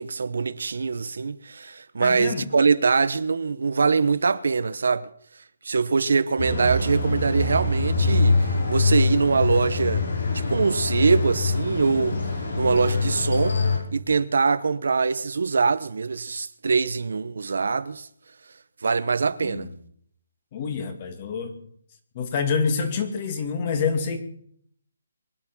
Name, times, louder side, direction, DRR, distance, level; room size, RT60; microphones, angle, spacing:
voice 1, 0.0-5.1 5.6-10.0 10.3-12.2 12.6-13.6 13.9-18.1 18.8-19.7, right 4 dB, 75° right, 1.0 m, -23 dB
voice 2, 2.0-2.5 19.4-19.7 20.5-21.6 22.1-24.2, left 5 dB, 30° left, 2.3 m, -27 dB
sound 1, 6.4-13.8, left 3 dB, 75° left, 6.7 m, -24 dB
23.5 x 9.7 x 6.1 m
hypercardioid pair, 170°, 0 cm